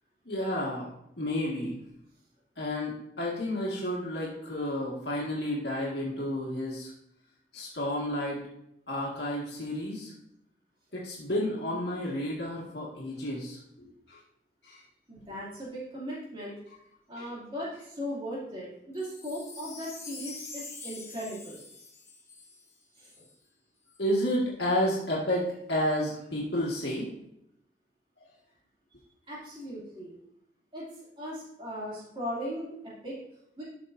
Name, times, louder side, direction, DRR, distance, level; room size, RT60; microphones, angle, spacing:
voice 1, 0.3-0.9 1.2-1.8 2.6-6.9 7.5-8.4 8.9-10.1 10.9-14.2 14.6-14.8 16.7-16.8 17.1-17.3 24.0-27.1, left 1 dB, 70° left, -5 dB, 1.9 m, -31 dB
voice 2, 15.1-16.5 17.1-21.6 23.0-23.1 29.3-30.1 30.7-30.9 31.2-32.7 33.0-33.2 33.6-33.7, equal, 30° right, -7 dB, 2.7 m, -38 dB
Wind chime, 18.9-23.3 23.9-24.0, left 3 dB, 15° left, 1.1 m, -45 dB
12.5 x 6.2 x 2.7 m, 0.78 s
head